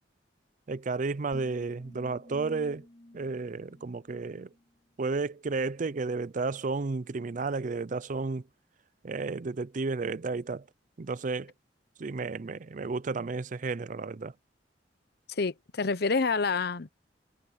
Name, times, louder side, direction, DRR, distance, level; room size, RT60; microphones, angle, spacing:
voice 1, 0.7-2.9 3.1-4.5 5.0-8.5 9.0-10.7 11.0-11.5 12.0-14.3, right 3 dB, 45° right, 0.5 m, -32 dB
sound 1, 1.3-4.7, left 1 dB, 35° left, 2.4 m, -51 dB
voice 2, 15.3-16.9, left 4 dB, 60° left, 0.8 m, -28 dB
head